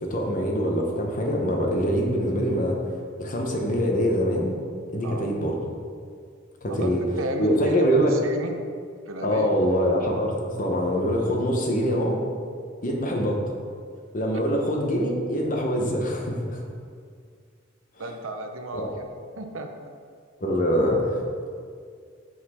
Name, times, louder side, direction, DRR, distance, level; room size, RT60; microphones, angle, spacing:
voice 1, 0.0-4.6 4.9-5.6 6.6-7.0 7.4-8.1 9.2-12.2 12.8-13.4 14.1-16.6 18.7-18.9 20.4-21.5, equal, 40° left, 1 dB, 0.9 m, -24 dB
voice 2, 7.2-8.6 9.1-9.5 14.3-14.4 18.0-19.0 19.4-19.7, right 2 dB, 90° right, 5 dB, 0.7 m, -34 dB
7.4 x 4.3 x 4.3 m, 2.1 s
head